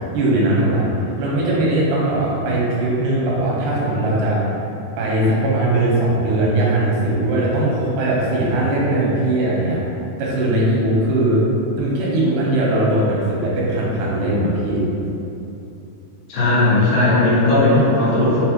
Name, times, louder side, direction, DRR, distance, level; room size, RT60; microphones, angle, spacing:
voice 1, 0.1-0.8 1.2-4.4 5.0-9.8 10.2-11.4 11.8-14.9, right 1 dB, 90° right, -5 dB, 2.4 m, -19 dB
voice 2, 16.3-18.4, left 2 dB, 85° left, -9 dB, 2.6 m, -16 dB
5.8 x 2.3 x 2.8 m, 2.9 s
omnidirectional pair, 3.6 m